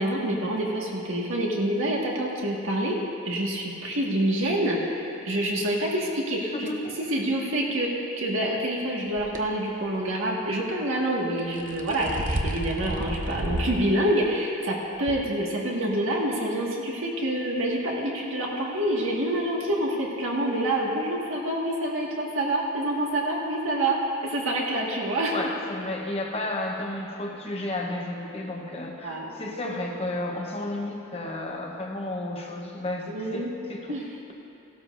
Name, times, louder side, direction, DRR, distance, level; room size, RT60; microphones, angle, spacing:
voice 1, 0.0-3.0 3.3-6.7 7.1-24.0 24.2-25.4 29.0-29.3 33.1-33.5 33.9-34.3, right 1 dB, 70° right, -3 dB, 1.8 m, -27 dB
sound 1, 9.2-9.4 11.4-13.8 14.2-14.3 15.1-15.2, right 1 dB, 40° right, 0.8 m, -30 dB
voice 2, 25.3-34.0, left 2 dB, 30° left, 0 dB, 1.0 m, -32 dB
17.0 x 12.0 x 2.6 m, 2.7 s
head